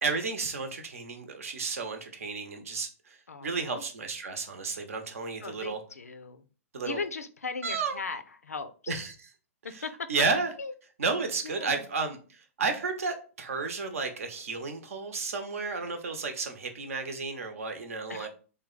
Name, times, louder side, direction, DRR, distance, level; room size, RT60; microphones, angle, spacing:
voice 1, 0.0-5.8 6.7-7.0 7.6-8.0 8.9-9.3 9.7-10.5 11.0-18.3, right 4 dB, 70° right, 0.8 m, -32 dB
voice 2, 3.3-3.8 5.4-6.4 6.8-8.9 9.8-9.9 10.2-10.3 10.6-10.7 11.4-11.8 18.1-18.3, left 4 dB, 85° left, 0.4 m, -38 dB
3.4 x 2.2 x 3.8 m
figure-of-eight pair, 110°, 8 cm